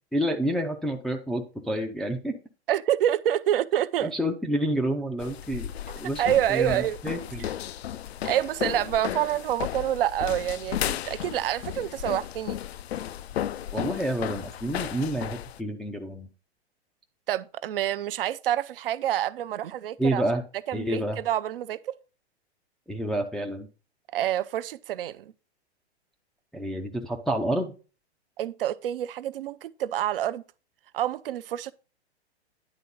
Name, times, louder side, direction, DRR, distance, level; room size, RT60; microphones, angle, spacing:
voice 1, 0.1-2.3 4.0-6.2 6.5-7.5 13.7-16.3 20.0-20.4 20.7-21.2 22.9-23.7 26.5-27.7, right 1 dB, ahead, 0.4 m, -29 dB
voice 2, 2.7-4.1 5.9-7.0 7.4-7.5 8.2-12.6 17.3-20.2 20.7-21.9 24.1-25.3 28.4-30.4 30.9-31.7, right 12 dB, 55° right, 0.6 m, -27 dB
sound 1, 5.2-15.6, left 11 dB, 70° left, 0.5 m, -34 dB
10.0 x 3.7 x 5.3 m
figure-of-eight pair, 115°, 33 cm